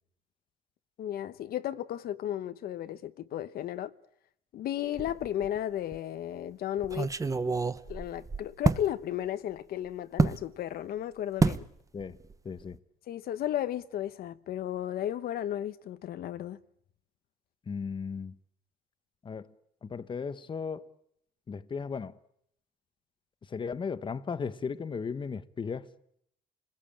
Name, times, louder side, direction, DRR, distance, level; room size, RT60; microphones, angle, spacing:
voice 1, 1.0-3.9 4.5-7.1 7.9-11.7 13.1-16.6, left 11 dB, 65° left, 1.0 m, -34 dB
sound 1, 5.0-5.6 5.9-6.0 6.8-8.9 10.2-10.4 11.4-11.7 12.0-12.3 12.6-12.8, right 4 dB, 20° right, 0.9 m, -28 dB
voice 2, 12.4-12.8 17.7-18.4 19.2-19.5 19.8-20.9 21.5-22.1 23.4-25.9, left 5 dB, 30° left, 1.1 m, -36 dB
29.0 x 20.5 x 8.8 m
cardioid pair, 110°, 17 cm